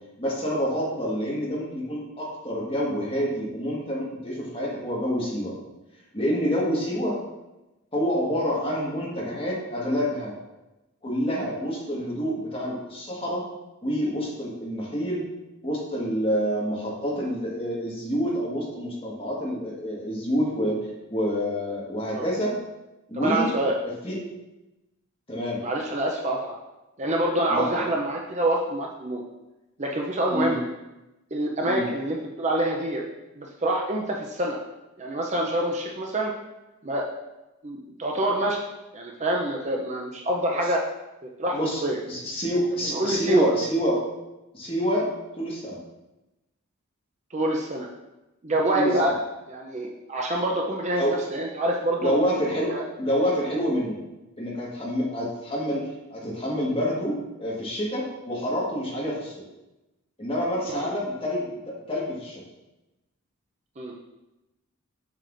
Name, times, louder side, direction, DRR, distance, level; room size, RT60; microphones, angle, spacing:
voice 1, 0.2-5.5 6.1-7.2 7.9-10.3 11.0-13.4 13.8-15.2 15.6-22.5 23.1-23.5 24.0-24.2 25.3-25.6 27.5-27.9 30.3-30.6 31.7-31.9 41.5-44.0 44.5-45.1 45.4-45.8 48.7-49.1 50.9-51.2 52.0-54.0 54.4-59.4 60.2-62.4, equal, 25° left, -4 dB, 1.6 m, -27 dB
voice 2, 23.1-23.8 25.6-26.6 27.0-29.2 29.8-30.6 31.3-33.0 33.4-34.6 35.0-36.3 36.8-37.0 37.6-38.6 38.9-40.8 41.2-42.0 42.9-43.5 47.3-47.9 48.4-49.2 49.5-52.1 52.7-52.8 60.7-60.9 63.8-63.9, right 1 dB, 30° right, 0 dB, 0.6 m, -26 dB
7.5 x 6.7 x 2.6 m, 0.99 s
head